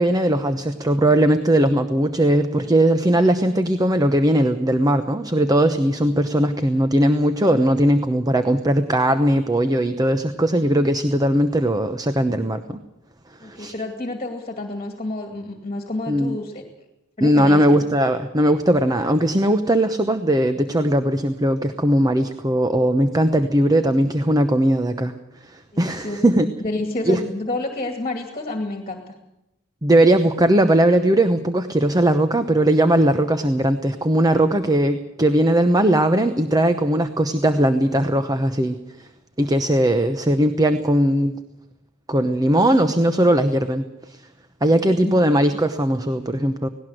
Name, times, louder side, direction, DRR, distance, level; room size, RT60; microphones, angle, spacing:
voice 1, 0.0-12.8 13.4-13.7 16.1-16.4 17.2-25.1 25.4-26.5 27.0-27.2 29.8-39.1 39.4-41.3 42.1-44.2 44.6-46.7, right 1 dB, 15° right, 9 dB, 0.9 m, -19 dB
voice 2, 13.4-16.6 17.2-17.8 25.7-26.3 26.6-29.2 44.7-45.1, left 2 dB, 30° left, 5 dB, 2.3 m, -29 dB
18.5 x 18.0 x 7.8 m, 0.92 s
head